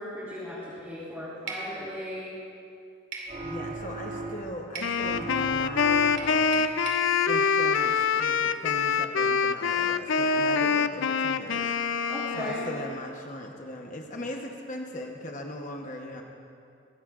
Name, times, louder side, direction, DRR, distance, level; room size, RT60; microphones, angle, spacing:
voice 1, 0.0-2.3 12.1-12.7, equal, 10° right, -10 dB, 2.8 m, -37 dB
sound 1, 1.5-1.7 3.1-3.3 4.7-5.0 6.2-7.1, right 4 dB, 60° right, 2.6 m, -37 dB
sound 2, 3.3-4.7 5.0-6.5, right 3 dB, 35° right, 1.3 m, -37 dB
voice 2, 3.4-6.7 7.3-16.2, left 1 dB, 40° left, 1 dB, 1.0 m, -39 dB
Wind instrument woodwind instrument, 4.8-13.0, left 6 dB, 75° left, 0.5 m, -25 dB
21.5 x 16.5 x 2.5 m, 2.5 s
head